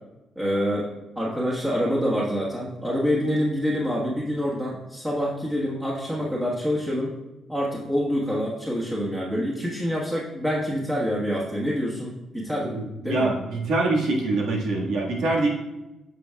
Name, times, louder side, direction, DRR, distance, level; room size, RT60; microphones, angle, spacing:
voice 1, 0.3-7.1 7.5-13.3, equal, 10° right, -5 dB, 1.4 m, -26 dB
voice 2, 12.7-15.5, right 2 dB, 80° right, -1 dB, 1.7 m, -24 dB
8.5 x 6.2 x 2.4 m, 1.0 s
cardioid pair, 90°, 0 cm